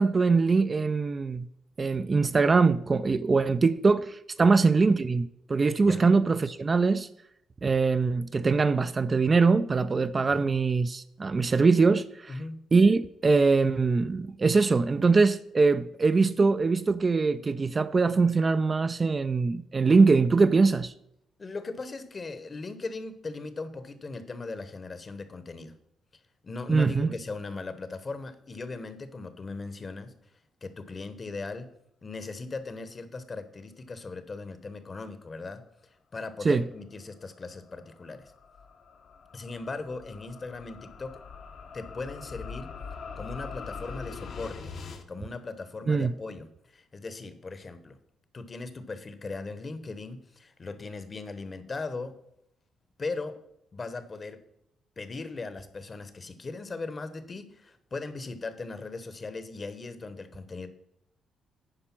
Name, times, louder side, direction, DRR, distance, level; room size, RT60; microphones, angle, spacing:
voice 1, 0.0-1.5 1.8-7.1 7.6-12.4 12.7-20.9 26.7-27.1 36.4-36.6 45.9-46.1, right 4 dB, 30° right, 0.4 m, -23 dB
voice 2, 21.4-25.7 26.4-30.1 30.6-31.7 32.0-35.6 36.1-38.3 39.3-41.1 41.7-42.7 43.2-44.7 45.1-48.0 48.3-52.1 53.0-53.4 53.7-54.4 55.0-60.7, left 3 dB, 35° left, 1.0 m, -38 dB
sound 1, 37.2-45.0, left 5 dB, 60° left, 1.1 m, -43 dB
9.9 x 5.0 x 6.0 m
cardioid pair, 90°, 0 cm